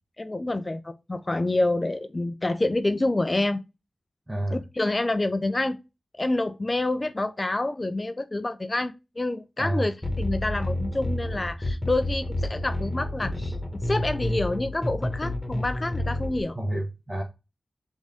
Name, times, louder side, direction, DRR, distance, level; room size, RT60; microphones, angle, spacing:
voice 1, 0.2-3.6 4.5-5.8 6.2-13.6 13.8-16.6, left 2 dB, 35° left, 0.4 m, -27 dB
voice 2, 4.3-4.6 9.6-9.9 16.5-17.2, right 1 dB, 25° right, 1.1 m, -29 dB
sound 1, 10.0-16.4, left 1 dB, 20° left, 1.5 m, -29 dB
4.0 x 3.6 x 3.5 m
wide cardioid pair, 60°, 0 cm